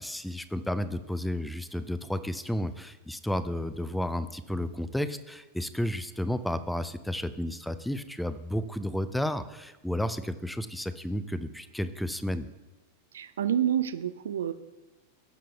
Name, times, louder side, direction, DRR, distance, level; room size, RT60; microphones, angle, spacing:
voice 1, 0.0-12.5, left 1 dB, 5° left, 13 dB, 0.4 m, -32 dB
voice 2, 13.1-14.5, right 10 dB, 65° right, 13 dB, 0.4 m, -28 dB
16.5 x 7.4 x 2.3 m, 1.1 s
figure-of-eight pair, 90°, 0 cm